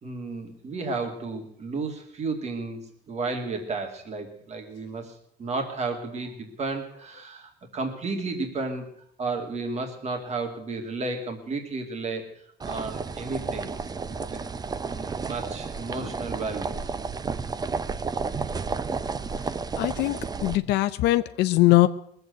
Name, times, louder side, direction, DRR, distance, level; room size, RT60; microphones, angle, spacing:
voice 1, 0.0-5.1 5.4-8.9 9.2-12.2 12.6-13.7 14.1-14.4 14.9-16.9, right 3 dB, 40° right, 3 dB, 2.5 m, -33 dB
sound 1, 12.6-20.6, right 4 dB, 25° right, 0.6 m, -32 dB
voice 2, 19.8-21.9, left 17 dB, 85° left, 10 dB, 0.6 m, -21 dB
20.0 x 8.0 x 8.0 m, 0.71 s
cardioid pair, 110°, 17 cm